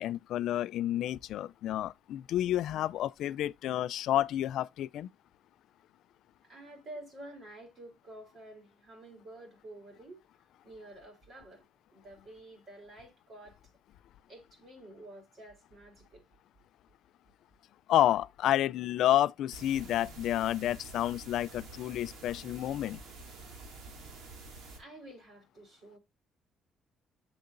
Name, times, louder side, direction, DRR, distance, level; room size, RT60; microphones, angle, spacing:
voice 1, 0.0-5.1 17.9-23.0, left 12 dB, 70° left, 0.4 m, -30 dB
voice 2, 6.4-10.2 10.6-11.6 11.9-13.6 14.3-16.2 24.7-26.0, right 1 dB, 40° right, 3.6 m, -50 dB
sound 1, 19.5-24.8, right 3 dB, 85° right, 2.1 m, -48 dB
7.6 x 6.7 x 2.5 m
cardioid pair, 150°, 0 cm